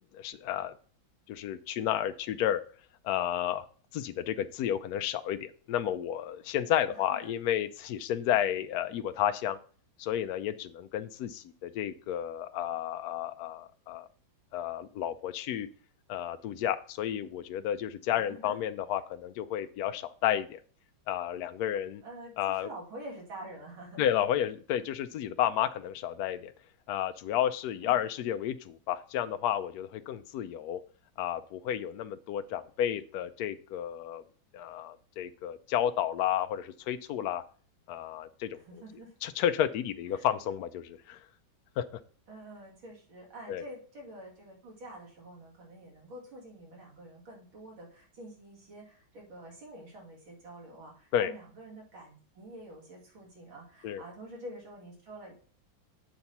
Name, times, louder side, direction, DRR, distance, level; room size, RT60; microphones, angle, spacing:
voice 1, 0.1-0.7 1.3-2.6 3.0-3.7 3.9-9.6 10.0-14.1 14.5-15.7 16.1-20.6 21.1-22.0 22.4-22.7 24.0-26.5 26.9-30.8 31.2-34.2 34.5-37.4 37.9-38.8 39.2-41.2 41.8-41.9 43.5-43.6 51.1-51.3 53.8-54.0, left 10 dB, 75° left, 10 dB, 0.8 m, -31 dB
voice 2, 6.9-7.3 18.1-18.6 22.0-24.2 27.8-28.0 38.5-39.1 40.1-40.3 42.3-55.3, right 1 dB, 85° right, -2 dB, 3.2 m, -47 dB
7.7 x 4.2 x 5.8 m, 0.42 s
omnidirectional pair, 2.1 m